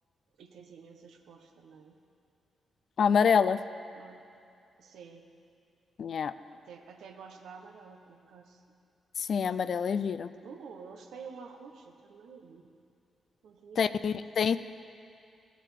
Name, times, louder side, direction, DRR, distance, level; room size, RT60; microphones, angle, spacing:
voice 1, 0.4-2.0 3.9-4.2 4.8-5.2 6.5-8.6 10.4-12.7 13.4-14.0, right 5 dB, 75° right, 4 dB, 0.8 m, -49 dB
voice 2, 3.0-3.6 6.0-6.3 9.2-10.3 13.8-14.6, left 6 dB, 65° left, 13 dB, 0.3 m, -26 dB
15.5 x 7.5 x 3.4 m, 2.5 s
hypercardioid pair, 45°, 0 cm